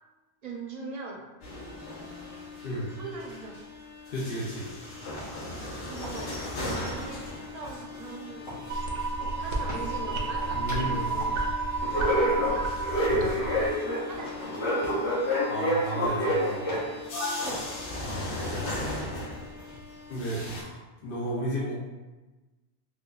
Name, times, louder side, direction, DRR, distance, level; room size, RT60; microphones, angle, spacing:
voice 1, 0.4-1.2 2.8-3.7 5.9-6.3 6.6-8.5 9.4-11.4 11.9-12.7 13.0-15.1 17.4-17.6 18.1-18.2, right 3 dB, 45° right, -2 dB, 0.6 m, -41 dB
sound 1, 1.4-3.8 4.1-19.8 20.1-20.6, left 1 dB, 85° left, 1.0 m, -32 dB
voice 2, 4.1-4.7 10.5-11.0 13.1-13.3 15.5-16.7 18.0-18.8 20.1-21.8, equal, 60° left, -5 dB, 0.7 m, -33 dB
sound 2, 5.1-18.6, equal, 25° left, 1.4 m, -47 dB
sound 3, 8.7-13.7, right 3 dB, 80° right, 0.9 m, -31 dB
4.5 x 2.2 x 2.3 m, 1.2 s
omnidirectional pair, 1.1 m